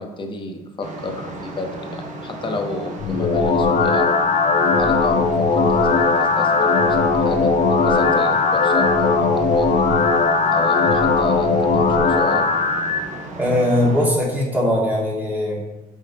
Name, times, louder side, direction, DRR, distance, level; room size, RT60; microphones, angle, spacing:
voice 1, 0.0-4.1 4.8-9.7 10.5-12.5, left 3 dB, 30° left, 3 dB, 1.1 m, -30 dB
sound 1, 0.8-14.1, right 2 dB, 45° right, 1.2 m, -34 dB
sound 2, 3.0-13.0, left 4 dB, 50° left, 0.7 m, -18 dB
voice 2, 13.4-15.6, left 1 dB, 10° right, -5 dB, 2.4 m, -20 dB
7.8 x 3.9 x 4.2 m, 1.0 s
cardioid pair, 110°, 17 cm